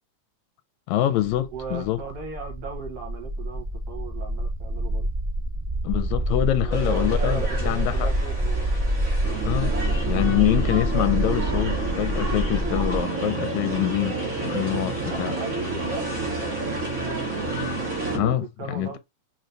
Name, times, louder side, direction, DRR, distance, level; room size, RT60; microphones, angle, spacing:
voice 1, 0.9-2.0 5.8-8.1 9.5-9.7 10.1-15.4 18.1-19.0, left 14 dB, 80° left, 1.9 m, -25 dB
sound 1, 1.3-13.0, right 1 dB, 10° right, 1.9 m, -27 dB
voice 2, 1.5-5.1 6.6-8.7 15.0-17.4 18.2-18.3 18.6-19.0, right 5 dB, 70° right, 2.1 m, -38 dB
sound 2, 6.7-18.2, right 1 dB, 35° right, 1.3 m, -33 dB
sound 3, 9.2-18.3, right 4 dB, 55° right, 1.8 m, -31 dB
4.5 x 3.2 x 2.6 m
omnidirectional pair, 3.3 m